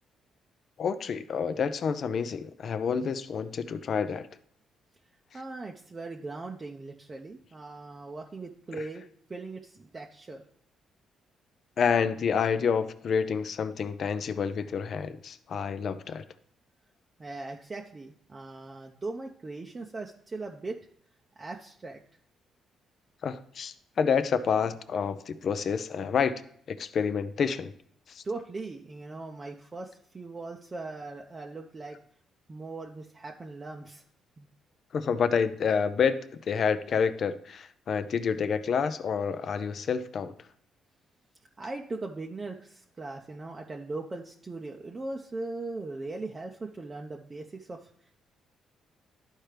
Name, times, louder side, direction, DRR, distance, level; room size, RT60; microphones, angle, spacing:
voice 1, 0.8-4.3 11.8-16.2 23.2-26.3 26.7-27.7 28.1-28.2 34.9-40.3, left 6 dB, 55° left, 12 dB, 0.5 m, -28 dB
voice 2, 5.3-9.0 9.3-10.4 17.2-20.8 21.4-22.0 28.2-32.0 32.5-34.0 34.4-34.5 41.6-48.1, right 3 dB, 30° right, 1 dB, 0.6 m, -39 dB
11.5 x 4.5 x 3.3 m, 0.64 s
cardioid pair, 90°, 0 cm